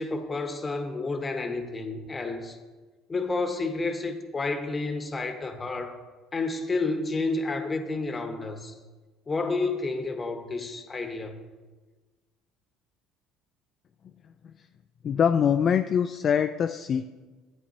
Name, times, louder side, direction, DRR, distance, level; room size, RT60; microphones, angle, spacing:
voice 1, 0.0-2.6 3.1-5.9 6.3-8.7 9.3-11.5, left 3 dB, 25° left, 1.0 m, -30 dB
voice 2, 15.0-17.0, left 8 dB, 45° left, 0.3 m, -24 dB
11.5 x 8.4 x 2.7 m
supercardioid pair, 95°, 0 cm